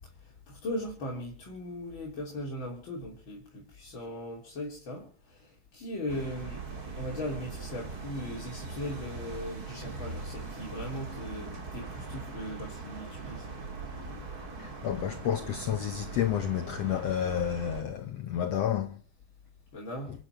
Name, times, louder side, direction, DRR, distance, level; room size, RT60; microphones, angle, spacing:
voice 1, 0.2-6.6 7.0-13.4 19.7-20.1, left 1 dB, 35° left, 3.6 m, -38 dB
sound 1, 6.1-17.8, right 3 dB, 30° right, 2.6 m, -41 dB
voice 2, 14.6-19.0, left 10 dB, 75° left, 1.5 m, -30 dB
29.5 x 9.9 x 4.5 m
omnidirectional pair, 4.2 m